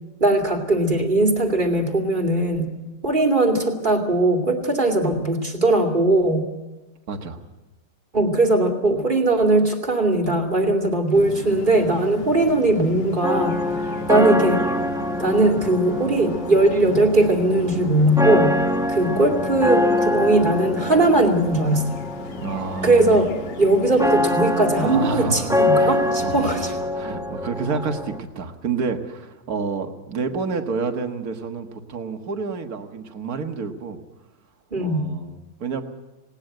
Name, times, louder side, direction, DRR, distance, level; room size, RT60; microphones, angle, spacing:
voice 1, 0.2-2.7 3.0-6.5 8.1-14.7 15.2-18.6 18.9-21.9 22.8-23.3 23.6-26.7 34.7-35.1, right 2 dB, 25° right, 2 dB, 2.6 m, -19 dB
voice 2, 7.1-7.4 19.1-19.3 22.4-23.2 24.8-26.6 26.9-34.0 34.8-35.8, right 5 dB, 55° right, 5 dB, 2.0 m, -29 dB
sound 1, 11.1-26.9, left 3 dB, 65° left, 2.2 m, -37 dB
sound 2, 13.2-28.2, left 1 dB, 5° right, 0.6 m, -25 dB
19.5 x 18.5 x 7.8 m, 1.1 s
omnidirectional pair, 2.0 m